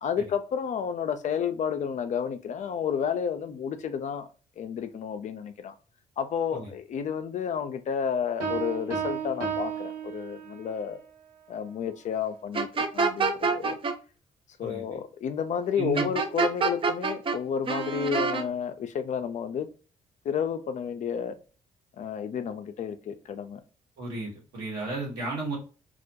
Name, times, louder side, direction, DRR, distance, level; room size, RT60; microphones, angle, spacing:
voice 1, 0.0-4.3 4.6-5.7 6.2-11.0 11.5-13.8 14.6-19.7 20.2-21.4 22.0-23.6, left 7 dB, 45° left, 10 dB, 0.4 m, -31 dB
sound 1, 8.4-10.8, right 6 dB, 85° right, 0.7 m, -33 dB
sound 2, 12.5-13.9 16.0-17.4 17.7-18.4, right 4 dB, 30° right, 0.5 m, -26 dB
voice 2, 15.8-16.1 24.0-25.6, right 3 dB, 70° right, -3 dB, 1.2 m, -33 dB
2.3 x 2.1 x 2.7 m, 0.36 s
hypercardioid pair, 45°, 17 cm